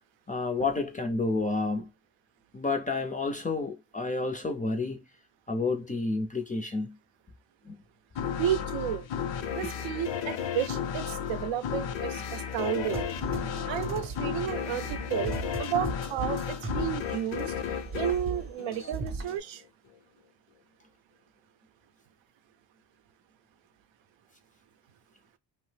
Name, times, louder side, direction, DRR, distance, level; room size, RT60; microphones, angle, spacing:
voice 1, 0.3-1.9 2.5-5.0 5.5-7.0 7.7-7.8, left 3 dB, 20° left, 0.3 m, -30 dB
sound 1, 8.2-19.3, left 8 dB, 75° left, 0.6 m, -33 dB
voice 2, 8.4-9.1 9.5-13.1 13.7-15.3 15.6-17.5 17.9-19.6, right 10 dB, 80° right, 0.6 m, -32 dB
sound 2, 12.8-17.5 17.7-19.4, right 4 dB, 30° right, 0.5 m, -38 dB
2.8 x 2.0 x 3.2 m
cardioid pair, 135°, 45 cm